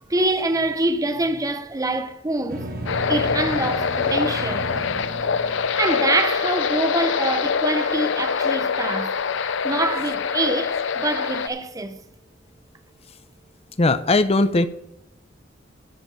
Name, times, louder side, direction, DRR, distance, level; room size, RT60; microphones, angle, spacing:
voice 1, 0.1-2.7 3.1-4.7 5.8-9.2 9.6-12.0, right 2 dB, 20° right, 0.8 m, -25 dB
sound 1, 2.5-6.4, right 2 dB, 50° right, 1.4 m, -34 dB
sound 2, 2.9-11.5, left 6 dB, 70° left, 0.6 m, -24 dB
voice 2, 13.8-14.7, left 2 dB, 30° left, 0.7 m, -18 dB
13.5 x 5.2 x 6.1 m
head